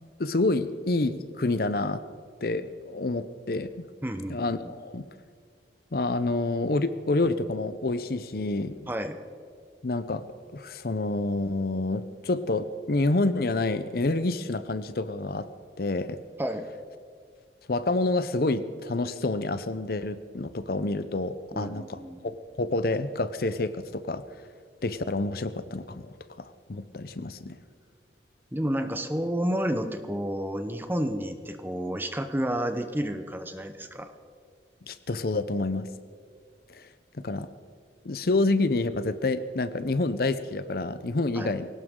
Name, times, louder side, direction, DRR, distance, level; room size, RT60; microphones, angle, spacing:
voice 1, 0.2-2.0 2.4-3.9 4.3-5.0 5.9-8.9 9.8-10.3 10.5-15.5 15.8-16.2 17.7-24.2 24.8-27.6 34.8-35.9 36.7-36.9 37.1-37.5 38.0-41.7, left 2 dB, 55° left, 13 dB, 0.7 m, -28 dB
voice 2, 4.0-4.7 8.9-9.2 16.4-16.7 21.5-22.2 28.5-34.1 41.3-41.5, equal, 10° right, 7 dB, 0.9 m, -30 dB
21.0 x 18.0 x 3.8 m, 2.1 s
head